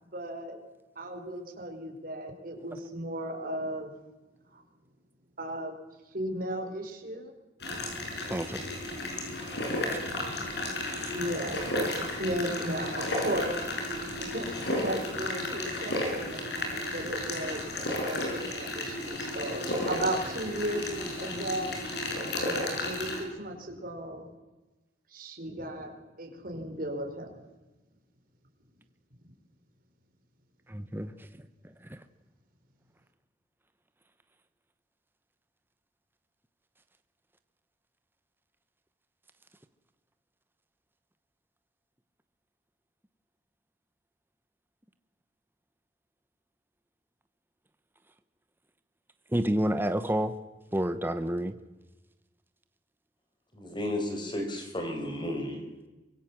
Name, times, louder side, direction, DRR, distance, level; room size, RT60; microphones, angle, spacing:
voice 1, 0.1-0.6 1.0-3.9 4.5-4.6 5.4-5.7 6.1-7.3 9.5-10.6 11.1-13.7 14.1-14.5 14.8-17.6 18.0-21.8 22.2-24.3 25.1-25.9 26.2-27.4, right 1 dB, 55° right, 3 dB, 4.5 m, -35 dB
sound 1, 7.6-23.2, left 1 dB, 65° left, 6.6 m, -33 dB
voice 2, 8.3-8.7 9.9-10.0 11.0-11.1 30.7-31.3 31.8-32.0 49.3-50.3 50.7-51.5, right 1 dB, 10° right, 10 dB, 1.0 m, -29 dB
voice 3, 53.5-55.6, left 1 dB, 25° left, 5 dB, 5.1 m, -33 dB
24.5 x 23.5 x 7.4 m, 1.1 s
head